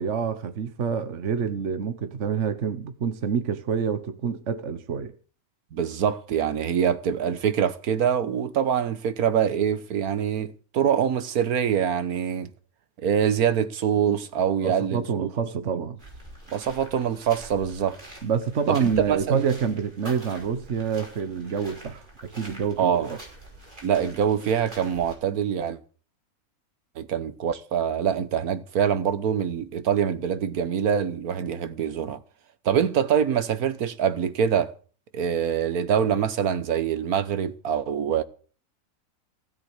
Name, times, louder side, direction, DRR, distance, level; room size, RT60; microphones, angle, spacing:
voice 1, 0.0-5.1 14.6-16.0 18.2-23.2, right 6 dB, 55° right, 1.4 m, -27 dB
voice 2, 5.7-12.5 13.0-15.3 16.5-18.0 18.7-19.4 22.8-23.1 23.8-25.8 27.0-32.2 32.6-34.7 35.1-38.2, right 8 dB, 85° right, 1.6 m, -24 dB
sound 1, 16.0-25.1, right 1 dB, 35° right, 5.4 m, -45 dB
16.0 x 7.8 x 8.1 m
omnidirectional pair, 1.5 m